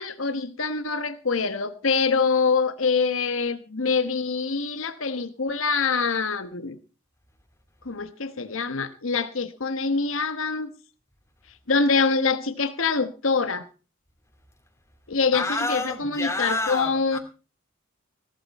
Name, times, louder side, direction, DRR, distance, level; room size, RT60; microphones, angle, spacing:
voice 1, 0.0-6.8 7.8-10.7 11.7-13.6 15.1-17.2, left 4 dB, 75° left, 9 dB, 1.2 m, -25 dB
voice 2, 15.3-17.2, left 2 dB, 15° left, 3 dB, 2.4 m, -29 dB
18.0 x 12.5 x 4.2 m, 0.35 s
head